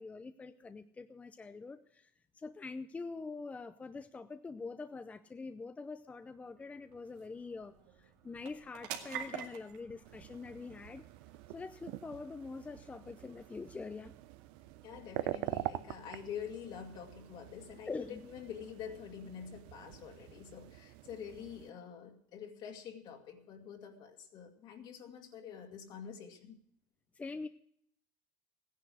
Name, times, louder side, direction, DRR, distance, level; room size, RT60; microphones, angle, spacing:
voice 1, 0.0-11.0 11.5-14.1 17.9-18.2 27.1-27.5, left 4 dB, 15° left, 9 dB, 0.6 m, -45 dB
sound 1, 5.4-20.3, right 9 dB, 80° right, 2.2 m, -52 dB
sound 2, 10.0-21.7, right 16 dB, 65° right, 0.7 m, -45 dB
voice 2, 14.8-26.6, left 8 dB, 50° left, 2 dB, 2.1 m, -47 dB
15.0 x 10.0 x 6.3 m, 0.68 s
supercardioid pair, 130°, 10 cm